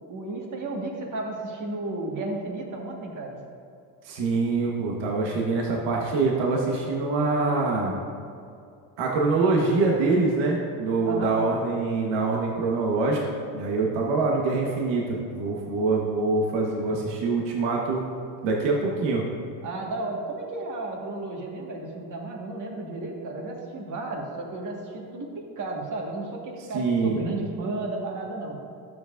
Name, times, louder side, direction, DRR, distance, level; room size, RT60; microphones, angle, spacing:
voice 1, 0.1-3.4 11.0-11.4 19.6-28.6, right 2 dB, 45° right, 0 dB, 1.7 m, -33 dB
voice 2, 4.0-8.0 9.0-13.2 13.5-18.1 18.4-19.2 26.7-27.2, right 3 dB, 70° right, -1 dB, 1.4 m, -24 dB
12.0 x 7.7 x 2.6 m, 2.4 s
cardioid pair, 120°, 44 cm